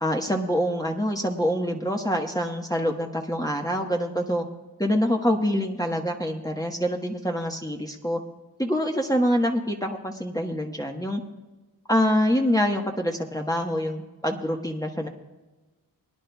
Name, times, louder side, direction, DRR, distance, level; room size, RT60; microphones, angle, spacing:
voice 1, 0.0-4.4 4.8-8.2 8.6-11.2 11.9-15.1, equal, 10° left, 0 dB, 1.3 m, -25 dB
22.0 x 10.5 x 2.3 m, 1.2 s
cardioid pair, 40°, 40 cm